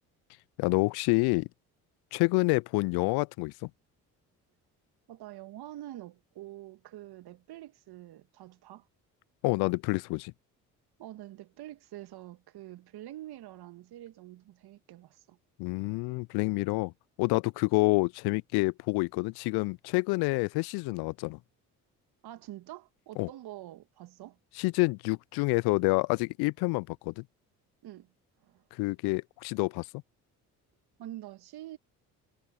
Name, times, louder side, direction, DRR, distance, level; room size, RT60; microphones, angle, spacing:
voice 1, 0.6-1.5 2.1-3.7 9.4-10.3 15.6-16.9 17.2-21.4 23.2-23.3 24.6-27.2 28.7-29.9, left 25 dB, 60° left, 0.5 m, -28 dB
voice 2, 5.1-8.9 11.0-15.4 22.2-24.4 27.8-28.1 28.4-28.6 31.0-31.8, right 14 dB, 60° right, 1.9 m, -46 dB
hypercardioid pair, 50°, 43 cm